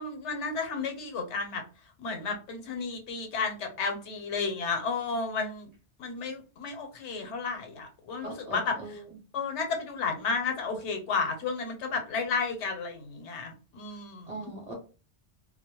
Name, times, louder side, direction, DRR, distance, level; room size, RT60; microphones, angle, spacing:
voice 1, 0.0-1.6 2.0-5.7 6.0-8.8 9.3-14.5, left 4 dB, 80° left, 5 dB, 0.9 m, -32 dB
voice 2, 8.2-9.0 14.3-14.7, right 1 dB, 40° right, -1 dB, 0.8 m, -40 dB
2.2 x 2.0 x 2.8 m, 0.34 s
omnidirectional pair, 1.2 m